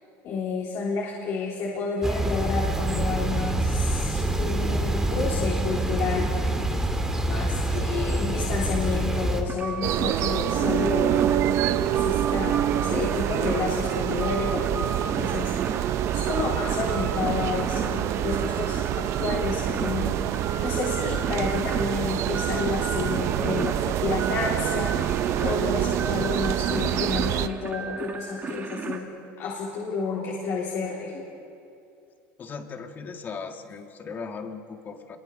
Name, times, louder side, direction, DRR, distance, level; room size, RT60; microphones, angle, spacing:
voice 1, 0.2-6.4 7.3-11.3 11.8-31.2, left 4 dB, 50° left, -4 dB, 3.7 m, -30 dB
sound 1, 2.0-9.4, right 1 dB, 10° right, 2.2 m, -26 dB
sound 2, 9.5-29.0, right 5 dB, 30° right, 1.9 m, -36 dB
sound 3, 9.8-27.5, right 11 dB, 50° right, 0.7 m, -26 dB
voice 2, 32.4-35.2, left 5 dB, 30° left, 5 dB, 1.9 m, -38 dB
26.5 x 22.5 x 5.6 m, 2.6 s
supercardioid pair, 125°, 6 cm